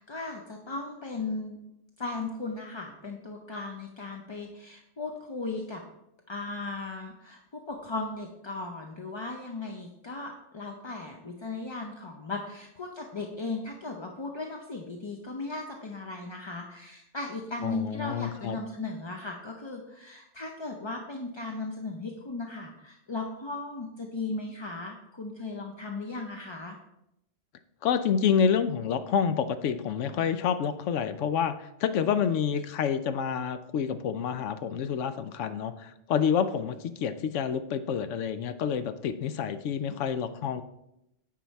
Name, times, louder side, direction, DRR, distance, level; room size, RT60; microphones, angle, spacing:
voice 1, 0.0-1.6 2.0-5.8 6.3-26.8, left 3 dB, 35° left, 2 dB, 0.5 m, -37 dB
voice 2, 17.6-18.6 27.8-40.6, left 7 dB, 85° left, 11 dB, 1.0 m, -28 dB
9.1 x 4.8 x 4.2 m, 0.83 s
omnidirectional pair, 1.2 m